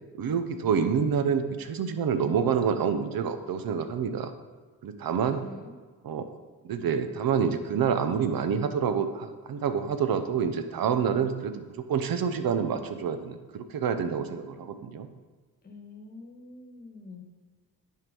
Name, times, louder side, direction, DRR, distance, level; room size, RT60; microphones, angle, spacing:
voice 1, 0.1-4.3 4.8-5.4 6.0-6.3 6.6-15.1, right 7 dB, 60° right, 9 dB, 0.8 m, -27 dB
voice 2, 5.1-5.7 15.6-17.2, left 2 dB, 25° left, 2 dB, 1.3 m, -46 dB
9.4 x 4.7 x 5.3 m, 1.4 s
wide cardioid pair, 140°, 39 cm